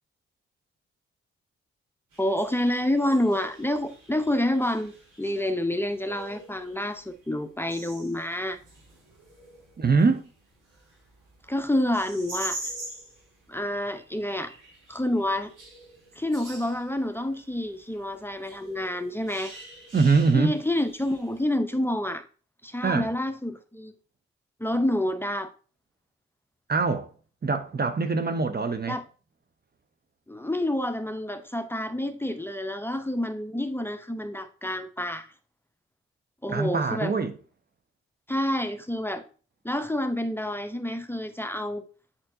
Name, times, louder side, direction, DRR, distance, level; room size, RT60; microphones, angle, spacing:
sound 1, 2.1-21.4, right 1 dB, 80° right, 2.5 m, -45 dB
voice 1, 2.2-4.9 5.2-8.6 11.5-12.6 13.5-14.5 14.9-15.5 16.2-19.5 20.3-22.2 22.6-23.9 24.6-25.5 28.9-29.0 30.3-35.3 36.4-37.1 38.3-39.2 39.6-41.9, left 1 dB, 5° left, 0.8 m, -28 dB
voice 2, 9.8-10.3 19.9-20.6 22.8-23.1 26.7-27.1 27.4-29.0 36.5-37.3, right 4 dB, 30° right, 0.7 m, -23 dB
8.7 x 4.3 x 2.7 m
hypercardioid pair, 40°, 31 cm